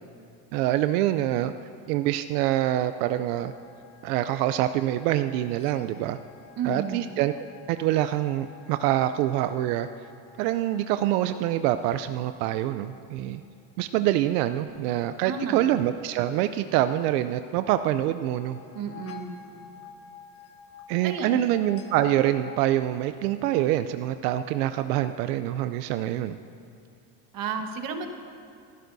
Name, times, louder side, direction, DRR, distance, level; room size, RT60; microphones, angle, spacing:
voice 1, 0.5-1.5 1.9-3.5 4.0-6.2 6.6-7.3 7.7-9.9 10.4-13.4 13.8-18.6 20.9-26.4, right 13 dB, 90° right, 10 dB, 0.6 m, -25 dB
sound 1, 2.9-12.8 18.2-22.6, left 7 dB, 30° left, 1.3 m, -51 dB
voice 2, 6.6-7.1 15.2-15.7 18.7-19.5 21.0-21.4 27.3-28.1, right 5 dB, 45° right, 5 dB, 1.4 m, -32 dB
sound 2, 14.7-19.7, right 4 dB, 60° right, 3.4 m, -56 dB
28.5 x 11.0 x 2.7 m, 2.5 s
supercardioid pair, 130°, 45 cm